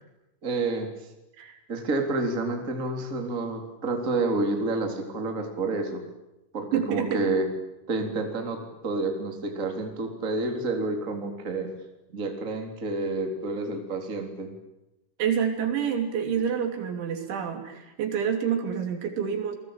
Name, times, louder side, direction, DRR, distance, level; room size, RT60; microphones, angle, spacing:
voice 1, 0.4-0.9 1.7-6.0 6.5-7.5 7.9-11.7 12.1-14.5, right 3 dB, 20° right, 3 dB, 3.4 m, -29 dB
voice 2, 6.7-7.3 15.2-19.6, right 7 dB, 70° right, 5 dB, 5.3 m, -28 dB
28.5 x 21.0 x 9.0 m, 0.94 s
omnidirectional pair, 5.7 m